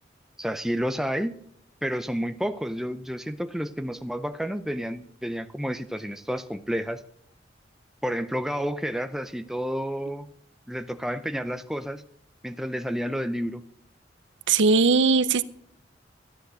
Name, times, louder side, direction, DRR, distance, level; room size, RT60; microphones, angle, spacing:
voice 1, 0.4-1.4 1.8-7.0 8.0-10.3 10.7-12.0 12.4-13.6, equal, ahead, 9 dB, 0.5 m, -30 dB
voice 2, 14.5-15.4, right 4 dB, 85° right, 15 dB, 0.7 m, -19 dB
14.0 x 10.5 x 6.3 m, 0.67 s
head